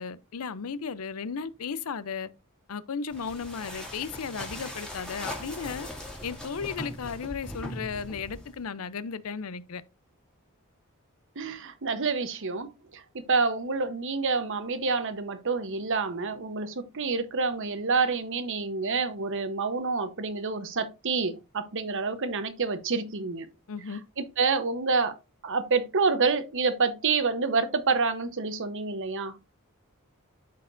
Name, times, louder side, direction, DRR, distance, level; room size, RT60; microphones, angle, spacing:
voice 1, 0.0-2.3 2.7-5.9 6.2-9.8 23.7-24.0, left 6 dB, 70° left, 0.5 m, -35 dB
sound 1, 3.1-8.7, left 1 dB, 5° left, 1.9 m, -40 dB
voice 2, 11.4-23.5 24.2-25.2 25.4-29.4, right 4 dB, 60° right, 0.9 m, -28 dB
12.5 x 4.3 x 2.5 m
head